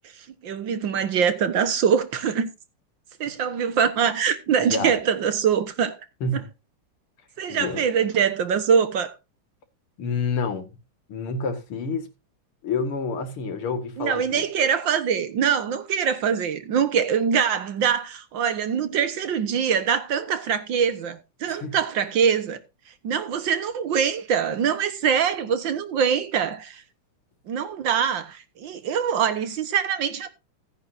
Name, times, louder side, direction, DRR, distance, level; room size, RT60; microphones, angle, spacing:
voice 1, 0.1-2.5 3.2-6.0 6.3-6.4 7.4-9.1 14.0-22.6 23.0-26.8 27.5-30.3, right 7 dB, 65° right, 2.0 m, -23 dB
voice 2, 7.5-7.8 10.0-10.8 11.1-12.1 12.6-14.5 21.5-21.7, left 4 dB, 85° left, 2.7 m, -28 dB
17.0 x 9.6 x 2.7 m
omnidirectional pair, 2.3 m